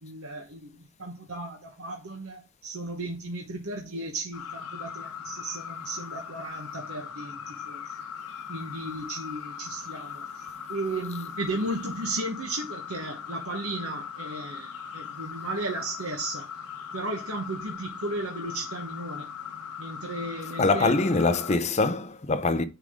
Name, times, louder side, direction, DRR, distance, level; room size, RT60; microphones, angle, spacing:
voice 1, 0.0-7.9 8.5-16.5 16.9-19.3 19.8-21.1, right 2 dB, 70° right, 1.2 m, -35 dB
sound 1, 4.3-21.6, left 7 dB, 85° left, 0.9 m, -40 dB
voice 2, 20.6-22.6, left 3 dB, 30° left, 0.5 m, -23 dB
9.9 x 3.6 x 3.6 m
head